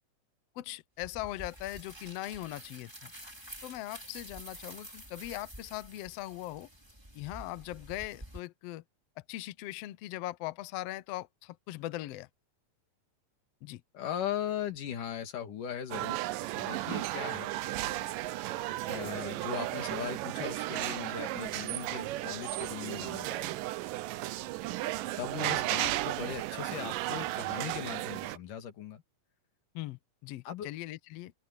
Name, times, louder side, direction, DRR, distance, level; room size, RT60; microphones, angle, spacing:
voice 1, 0.5-3.1 3.6-6.7 7.1-8.8 9.3-12.3 13.6-13.8 29.7-31.3, left 16 dB, 90° left, 1.4 m, -40 dB
sound 1, 1.0-8.4, right 1 dB, 5° right, 4.8 m, -49 dB
voice 2, 13.9-16.2 16.5-17.5 18.9-23.5 25.2-29.0 30.5-30.7, left 9 dB, 70° left, 3.5 m, -39 dB
sound 2, 15.9-28.4, right 16 dB, 80° right, 2.3 m, -34 dB
open air
omnidirectional pair, 3.9 m